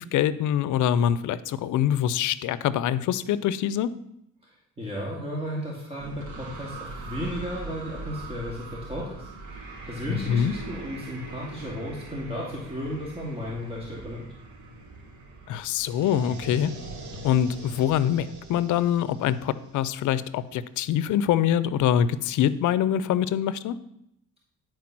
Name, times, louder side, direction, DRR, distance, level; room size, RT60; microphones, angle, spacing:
voice 1, 0.0-3.9 10.1-10.5 15.5-16.7 17.2-23.8, left 10 dB, 75° left, 16 dB, 0.6 m, -24 dB
voice 2, 4.4-9.3 9.8-14.2, equal, 20° right, -4 dB, 2.4 m, -34 dB
sound 1, 6.0-20.5, right 3 dB, 70° right, 2.6 m, -42 dB
11.0 x 4.6 x 6.0 m, 0.79 s
cardioid pair, 90°, 30 cm